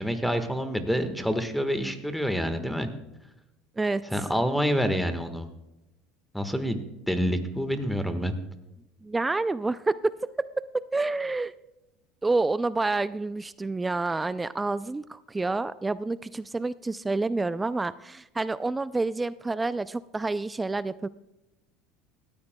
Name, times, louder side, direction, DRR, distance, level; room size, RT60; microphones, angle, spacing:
voice 1, 0.0-2.9 4.1-5.5 6.3-6.8 7.1-8.3, equal, ahead, 9 dB, 1.4 m, -27 dB
voice 2, 3.8-4.3 9.0-10.0 10.4-11.5 12.2-21.1, right 3 dB, 15° right, 16 dB, 0.3 m, -28 dB
17.5 x 13.5 x 2.2 m, 0.95 s
supercardioid pair, 95°, 0 cm